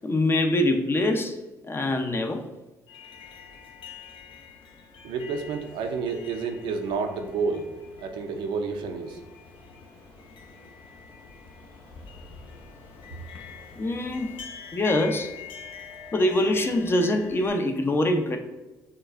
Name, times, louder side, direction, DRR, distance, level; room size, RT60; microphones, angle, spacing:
voice 1, 0.0-1.3 1.7-2.4 13.8-14.3 14.7-15.3 16.1-18.4, left 1 dB, 30° left, 5 dB, 0.5 m, -24 dB
sound 1, 2.9-17.5, left 6 dB, 70° left, 0.7 m, -45 dB
voice 2, 5.0-9.2 13.1-13.2, right 5 dB, 75° right, 5 dB, 0.5 m, -30 dB
6.4 x 2.3 x 2.4 m, 1.1 s
supercardioid pair, 60°, 8 cm